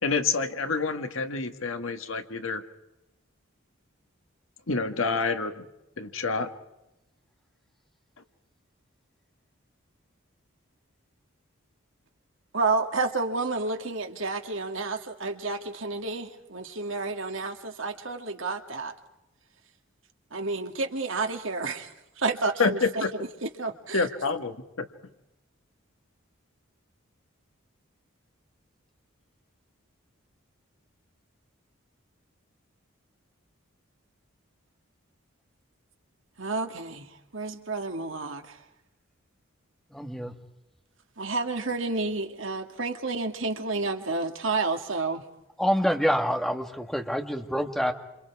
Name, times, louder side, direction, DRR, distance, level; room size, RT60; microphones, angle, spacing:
voice 1, 0.0-2.6 4.7-5.7 6.0-6.5 22.6-23.1 23.9-24.8, left 4 dB, 70° left, 1.7 m, -28 dB
voice 2, 12.5-18.9 20.3-21.9 22.2-23.0 23.4-24.0 36.4-37.1 37.3-38.4 41.2-45.2, right 3 dB, 65° right, 2.2 m, -30 dB
voice 3, 39.9-40.3 45.6-47.9, equal, ahead, 1.8 m, -26 dB
28.0 x 27.5 x 4.8 m
head